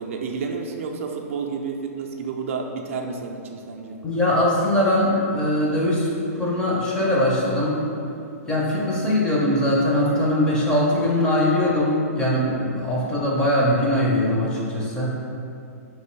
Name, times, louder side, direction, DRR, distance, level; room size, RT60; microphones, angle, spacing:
voice 1, 0.0-4.0, right 5 dB, 55° right, 2 dB, 0.3 m, -30 dB
voice 2, 4.0-6.1 6.3-7.8 8.5-15.2, left 1 dB, 10° left, -5 dB, 0.5 m, -21 dB
3.0 x 2.6 x 4.4 m, 2.6 s
hypercardioid pair, 160°, 9 cm